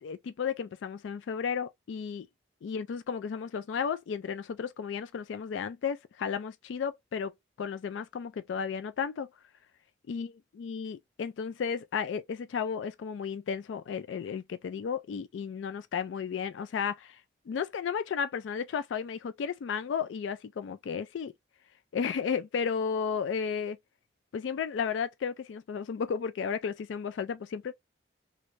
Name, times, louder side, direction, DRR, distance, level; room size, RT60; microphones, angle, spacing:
voice 1, 0.0-2.3 2.6-7.3 7.6-9.3 10.1-10.3 10.6-17.2 17.5-21.3 21.9-23.8 24.3-27.7, left 6 dB, 90° left, 0.3 m, -33 dB
3.1 x 2.5 x 3.1 m
head